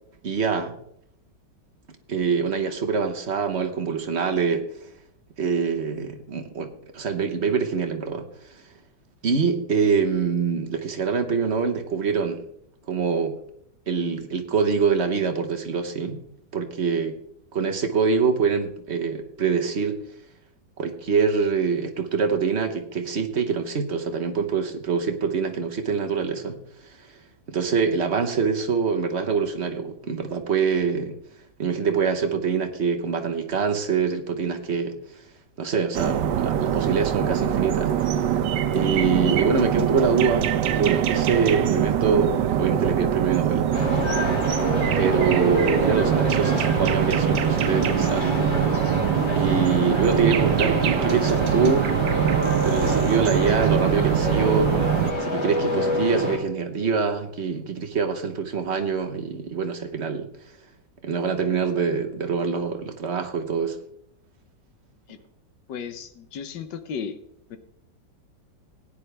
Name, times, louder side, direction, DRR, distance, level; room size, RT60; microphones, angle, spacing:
voice 1, 0.2-0.7 2.1-4.7 5.4-8.3 9.2-12.4 12.9-13.4 13.9-16.2 16.5-17.2 17.5-20.0 20.8-26.6 27.5-31.2 31.6-34.9 35.6-38.2 38.7-43.7 45.0-48.8 49.3-51.9 52.6-54.7 55.2-60.3 61.0-63.8, right 5 dB, 45° right, 5 dB, 1.1 m, -25 dB
sound 1, 35.9-55.1, right 9 dB, 75° right, 1.4 m, -23 dB
sound 2, 43.7-56.4, left 2 dB, 55° left, 4.0 m, -28 dB
voice 2, 65.7-67.1 67.5-67.6, left 7 dB, 75° left, 10 dB, 1.6 m, -34 dB
16.5 x 9.8 x 3.4 m, 0.74 s
omnidirectional pair, 1.9 m